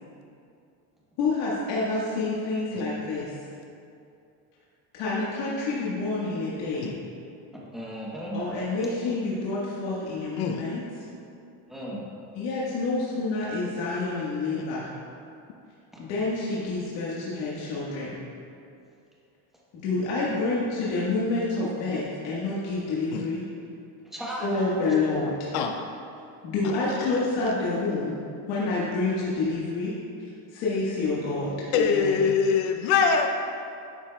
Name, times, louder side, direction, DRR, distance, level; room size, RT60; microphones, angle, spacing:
voice 1, 1.2-3.3 4.9-6.9 8.3-10.8 12.3-14.9 16.0-18.1 19.7-23.4 24.4-25.3 26.4-28.1 28.5-29.9 30.5-32.3, left 3 dB, 80° left, -7 dB, 1.6 m, -28 dB
voice 2, 7.5-8.4 11.7-12.0 15.9-16.0 20.3-20.4 24.0-24.7, right 1 dB, ahead, -5 dB, 0.9 m, -35 dB
voice 3, 25.5-25.9 31.7-33.3, left 6 dB, 55° left, 4 dB, 0.6 m, -23 dB
10.5 x 7.4 x 2.3 m, 2.6 s
cardioid pair, 175°, 46 cm